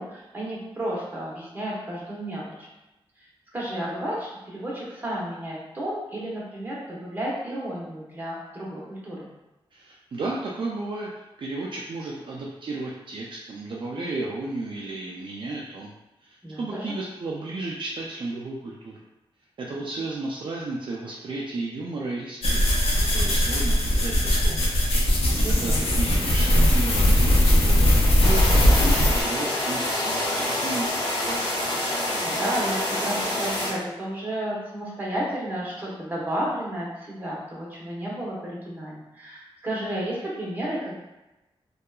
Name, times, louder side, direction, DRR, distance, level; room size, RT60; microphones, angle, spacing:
voice 1, 0.0-2.7 3.5-9.3 16.4-16.9 25.4-25.7 32.2-40.9, right 1 dB, 20° right, -6 dB, 0.9 m, -32 dB
voice 2, 9.7-11.1 11.4-15.9 16.2-18.9 19.6-24.6 25.3-31.0 31.3-31.6, right 2 dB, 55° right, -3 dB, 0.4 m, -33 dB
sound 1, 22.4-29.2, left 1 dB, 80° left, 0.6 m, -20 dB
sound 2, 28.2-33.7, left 1 dB, 50° left, 1.0 m, -27 dB
2.8 x 2.3 x 2.2 m, 1.0 s
wide cardioid pair, 100°, 10 cm